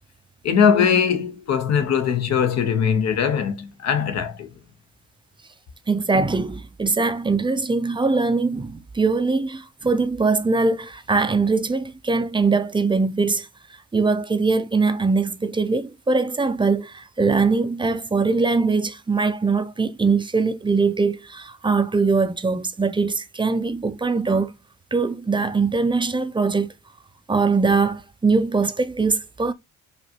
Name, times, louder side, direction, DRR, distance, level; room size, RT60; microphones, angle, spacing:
voice 1, 0.4-4.5, left 7 dB, 60° left, 0.8 m, -20 dB
voice 2, 5.9-13.5 13.9-24.5 24.9-26.7 27.3-29.5, right 4 dB, 15° right, 0.4 m, -22 dB
5.2 x 2.5 x 2.7 m
cardioid pair, 90°, 30 cm